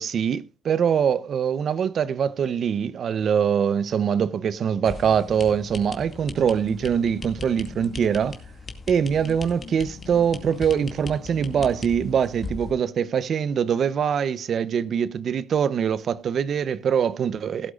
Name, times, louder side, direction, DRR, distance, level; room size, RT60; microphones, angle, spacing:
voice 1, 0.0-8.4 8.9-17.7, right 7 dB, 60° right, 0.8 m, -23 dB
sound 1, 4.9-12.7, left 4 dB, 45° left, 2.1 m, -38 dB
16.0 x 12.5 x 2.5 m
cardioid pair, 90°, 0 cm